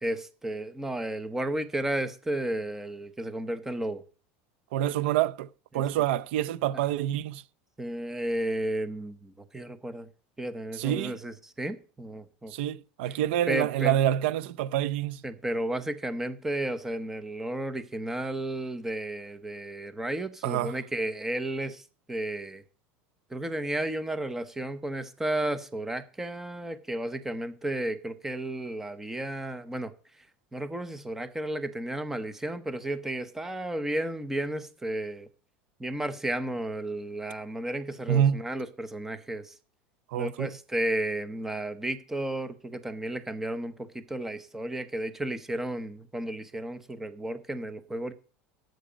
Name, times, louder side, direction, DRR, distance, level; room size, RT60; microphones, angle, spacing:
voice 1, 0.0-4.0 5.7-5.8 7.8-10.1 10.4-12.5 13.5-14.0 15.2-21.8 22.1-22.6 23.3-29.9 30.5-35.3 35.8-39.5 40.2-48.1, right 1 dB, 5° right, 0.8 m, -33 dB
voice 2, 4.7-7.4 10.7-11.2 12.5-15.2 20.4-20.8 38.1-38.4 40.1-40.5, right 11 dB, 70° right, 0.6 m, -27 dB
12.5 x 7.9 x 5.1 m
supercardioid pair, 165°, 6 cm